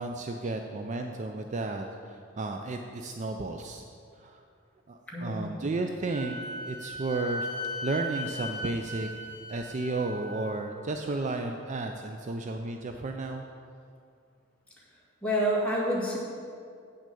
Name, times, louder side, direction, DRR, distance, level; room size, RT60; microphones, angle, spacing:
voice 1, 0.0-3.8 4.2-4.4 4.9-6.4 6.7-7.5 7.8-9.1 9.5-13.4, right 2 dB, 35° right, 4 dB, 0.4 m, -33 dB
voice 2, 5.1-5.5 15.2-16.2, equal, 5° left, -6 dB, 2.1 m, -28 dB
Wind instrument woodwind instrument, 6.1-10.5, left 1 dB, 50° left, 1.0 m, -38 dB
8.6 x 6.2 x 6.8 m, 2.4 s
head